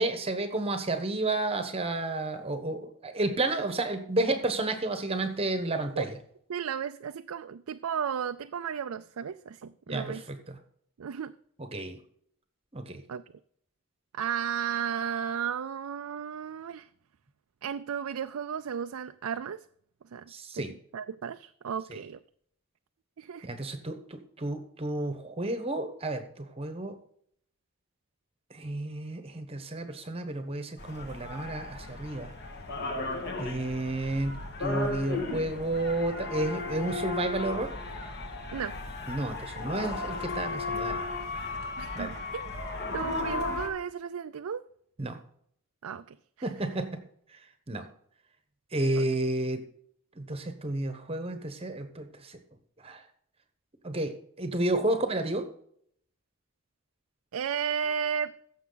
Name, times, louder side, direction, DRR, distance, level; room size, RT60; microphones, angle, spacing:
voice 1, 0.0-6.2 9.9-10.6 11.6-12.0 12.7-13.0 20.3-20.7 23.4-27.0 28.5-32.3 33.4-37.7 39.1-41.0 41.9-42.2 45.0-45.2 46.4-47.0 47.3-47.4 47.7-47.9 48.7-49.7 50.1-52.4 52.8-53.0 53.8-55.5, right 2 dB, 25° right, 8 dB, 1.0 m, -31 dB
voice 2, 6.5-10.2 11.0-11.3 13.1-13.2 14.1-16.9 17.6-19.6 20.1-20.6 20.9-22.2 23.2-23.5 38.5-38.8 41.8-42.5 42.9-44.6 45.8-46.5 49.0-49.1 57.3-58.4, right 7 dB, 75° right, 9 dB, 0.4 m, -34 dB
sound 1, 30.8-43.7, left 3 dB, 50° left, 1.9 m, -35 dB
15.5 x 7.1 x 3.9 m, 0.65 s
head